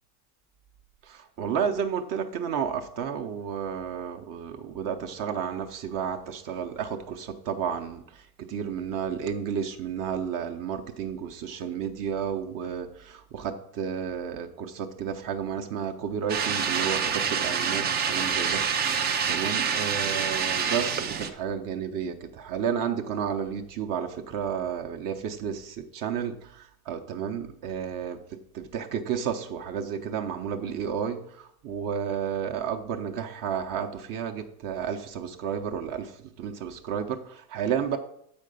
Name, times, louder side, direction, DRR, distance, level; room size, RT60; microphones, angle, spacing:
voice 1, 1.0-28.2 28.5-38.0, right 7 dB, 40° right, 5 dB, 0.8 m, -32 dB
sound 1, 16.3-21.3, right 6 dB, 25° right, 0.4 m, -27 dB
7.6 x 5.3 x 5.2 m, 0.70 s
supercardioid pair, 135°, 48 cm